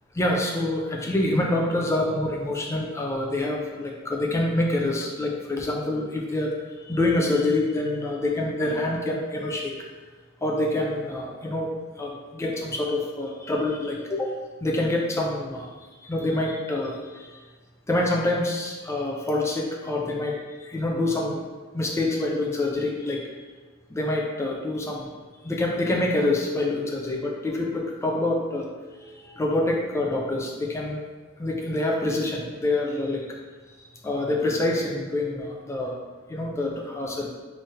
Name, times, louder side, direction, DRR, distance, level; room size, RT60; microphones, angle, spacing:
voice 1, 0.1-6.5 6.8-9.8 10.4-11.7 12.0-14.3 14.6-15.7 16.0-17.4 17.9-21.4 21.7-23.3 23.9-25.1 25.4-31.0 31.4-33.4 34.0-36.0 36.3-37.3, left 2 dB, 15° left, -1 dB, 0.4 m, -26 dB
3.2 x 2.0 x 4.2 m, 1.3 s
head